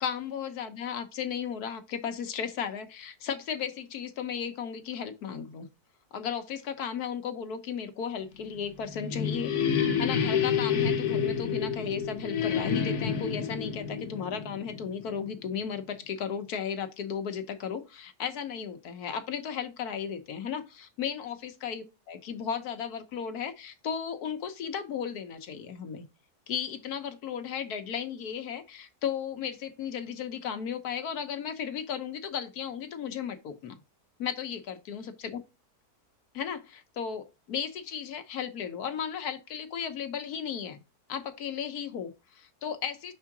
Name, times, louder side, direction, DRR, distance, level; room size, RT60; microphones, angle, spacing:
voice 1, 0.0-5.7 6.1-26.0 26.5-33.8 34.2-35.4 36.3-40.8 41.1-43.1, left 7 dB, 90° left, 1.4 m, -35 dB
sound 1, 8.6-15.3, left 7 dB, 55° left, 1.1 m, -29 dB
5.5 x 3.7 x 5.8 m
omnidirectional pair, 1.6 m